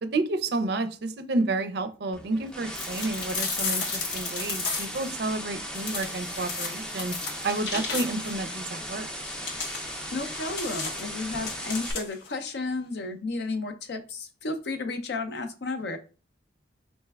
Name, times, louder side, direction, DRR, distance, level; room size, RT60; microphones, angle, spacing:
voice 1, 0.0-7.1 7.4-9.1, right 2 dB, 55° right, 0.4 m, -30 dB
sound 1, 2.1-11.9, equal, 5° left, 0.4 m, -37 dB
sound 2, 2.7-5.1 5.7-8.4 9.2-12.3, left 4 dB, 85° left, 0.8 m, -34 dB
voice 2, 10.1-16.0, left 3 dB, 60° left, 0.5 m, -33 dB
4.2 x 3.2 x 2.3 m
head